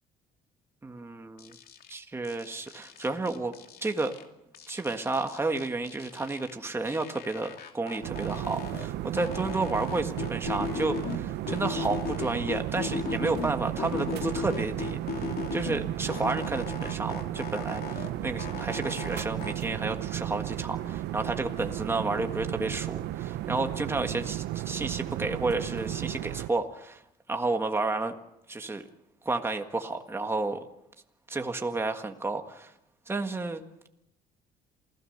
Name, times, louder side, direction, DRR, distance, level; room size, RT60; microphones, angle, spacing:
voice 1, 0.8-1.5 1.9-3.5 3.8-4.1 4.7-27.0 27.3-28.1 28.5-28.8 29.2-30.6 31.3-32.7 33.1-33.9, right 3 dB, 15° right, 5 dB, 1.6 m, -31 dB
sound 1, 1.4-1.9 2.2-4.2 4.5-6.5 6.8-8.9 9.2-11.2 11.5-13.5 13.8-15.8 16.1-18.1 18.4-19.5, left 7 dB, 65° left, 2.7 m, -37 dB
sound 2, 8.0-26.5, right 13 dB, 80° right, 0.9 m, -34 dB
27.5 x 16.5 x 6.7 m, 0.83 s
cardioid pair, 110°, 17 cm